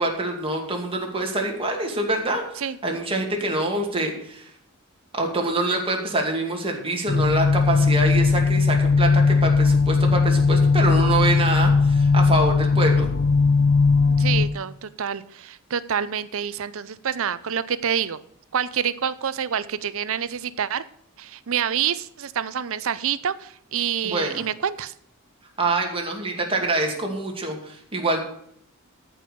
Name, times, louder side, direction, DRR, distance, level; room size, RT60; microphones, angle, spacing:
voice 1, 0.0-4.5 5.1-13.1 24.0-24.4 25.6-28.2, right 2 dB, 25° right, 1 dB, 2.4 m, -25 dB
sound 1, 7.1-14.4, left 4 dB, 45° left, 1.0 m, -18 dB
voice 2, 14.2-18.2 18.5-20.8 21.2-24.9, right 8 dB, 65° right, 16 dB, 0.6 m, -27 dB
13.5 x 5.5 x 6.8 m, 0.68 s
head